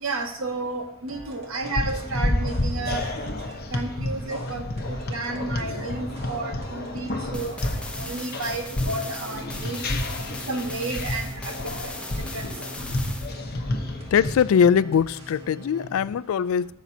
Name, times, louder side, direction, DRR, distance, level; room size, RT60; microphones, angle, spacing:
voice 1, 0.0-3.1 3.7-7.6 8.0-9.8 10.5-11.5 11.8-11.9 12.3-12.5, right 2 dB, 75° right, 4 dB, 1.3 m, -31 dB
sound 1, 1.1-15.9, right 1 dB, 30° right, 1.4 m, -43 dB
sound 2, 1.6-14.7, left 1 dB, 50° left, 1.0 m, -30 dB
sound 3, 7.3-13.3, left 2 dB, 5° left, 0.7 m, -39 dB
voice 2, 14.1-16.7, left 7 dB, 80° left, 18 dB, 0.3 m, -21 dB
15.0 x 7.2 x 2.8 m, 0.73 s
head